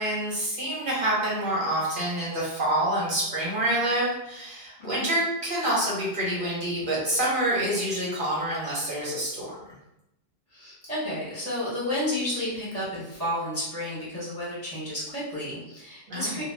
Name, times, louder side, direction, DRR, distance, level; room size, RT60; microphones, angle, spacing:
voice 1, 0.0-9.7 16.1-16.4, right 1 dB, 55° right, -6 dB, 1.0 m, -27 dB
voice 2, 4.8-5.1 10.5-16.4, left 1 dB, 40° left, -9 dB, 1.0 m, -31 dB
2.2 x 2.2 x 3.2 m, 0.88 s
omnidirectional pair, 1.1 m